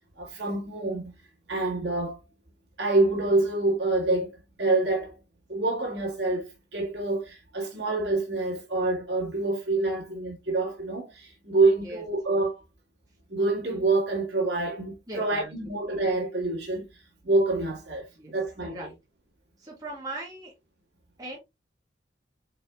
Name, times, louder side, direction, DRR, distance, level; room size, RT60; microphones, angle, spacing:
voice 1, 0.2-1.1 1.5-2.2 2.8-4.3 4.6-5.2 5.5-12.6 13.3-16.9 17.2-18.8, right 2 dB, 75° right, 1.8 m, -26 dB
voice 2, 15.1-15.8 18.1-18.4 18.6-19.0 19.6-20.5 21.2-21.4, right 1 dB, 20° right, 1.7 m, -39 dB
4.8 x 4.3 x 2.3 m
head